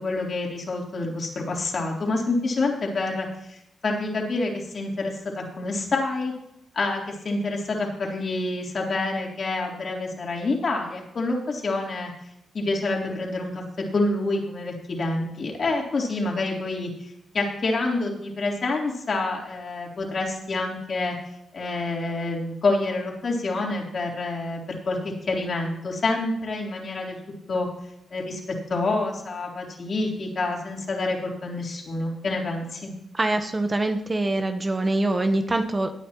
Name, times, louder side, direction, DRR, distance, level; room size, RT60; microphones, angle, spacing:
voice 1, 0.0-6.3 6.7-12.1 12.5-13.6 13.9-21.1 21.5-24.6 24.8-27.2 27.5-27.7 28.1-28.4 28.7-32.9, left 2 dB, 50° left, -1 dB, 3.4 m, -27 dB
voice 2, 33.1-36.0, right 2 dB, 25° right, 7 dB, 1.0 m, -24 dB
18.0 x 9.2 x 3.0 m, 0.81 s
cardioid pair, 90°, 0 cm